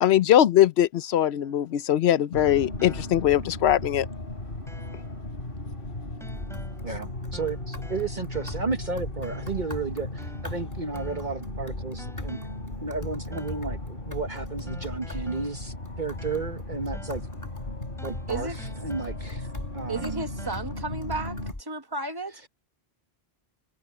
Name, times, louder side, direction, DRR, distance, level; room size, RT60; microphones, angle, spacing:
voice 1, 0.0-4.1, left 11 dB, 85° left, 0.9 m, -21 dB
sound 1, 1.4-3.5 3.9-4.0 4.7-5.2 6.2-6.9 7.3-8.8 9.2-9.7 10.2-11.5 12.0-12.7 13.3-13.7 14.7-16.7 16.9-17.3 18.0-19.5 19.9-20.6, equal, ahead, 7.6 m, -49 dB
sound 2, 2.3-21.5, left 2 dB, 60° left, 3.4 m, -37 dB
sound 3, 6.3-21.6, left 1 dB, 20° left, 1.2 m, -41 dB
voice 2, 6.8-12.4 12.8-17.2 18.0-19.5 19.7-20.3 22.3-22.5, right 4 dB, 50° right, 1.3 m, -33 dB
voice 3, 19.9-21.4 21.7-22.4, right 3 dB, 20° right, 1.2 m, -33 dB
omnidirectional pair, 1.1 m